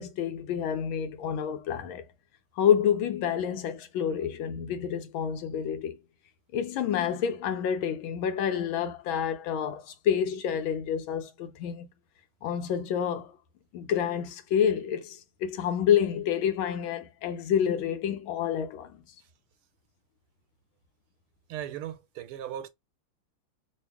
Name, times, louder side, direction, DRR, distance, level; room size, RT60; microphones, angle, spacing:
voice 1, 0.0-2.0 2.6-6.0 6.5-11.9 12.4-13.3 13.7-19.0, left 8 dB, 75° left, 1.3 m, -28 dB
voice 2, 21.5-22.7, right 11 dB, 85° right, 1.5 m, -37 dB
3.4 x 2.5 x 3.4 m
omnidirectional pair, 2.4 m